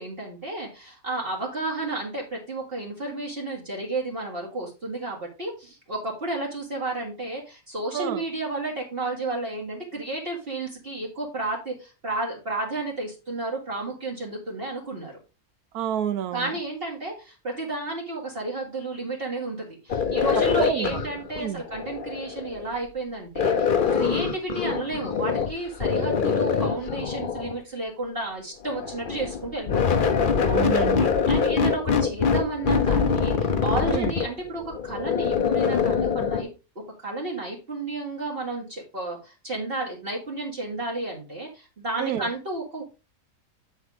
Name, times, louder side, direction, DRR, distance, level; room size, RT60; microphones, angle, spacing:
voice 1, 0.0-15.1 16.3-30.0 30.9-31.0 31.3-36.5 37.0-42.8, right 2 dB, 40° right, 2.1 m, -32 dB
voice 2, 15.7-16.5 20.6-21.0 21.4-21.6 30.4-31.1 33.9-34.1 42.0-42.3, right 10 dB, 90° right, 1.3 m, -28 dB
sound 1, 19.9-22.7 23.3-25.5 25.8-27.6 28.6-36.4, left 6 dB, 45° left, 0.8 m, -24 dB
8.0 x 4.5 x 4.8 m
omnidirectional pair, 1.5 m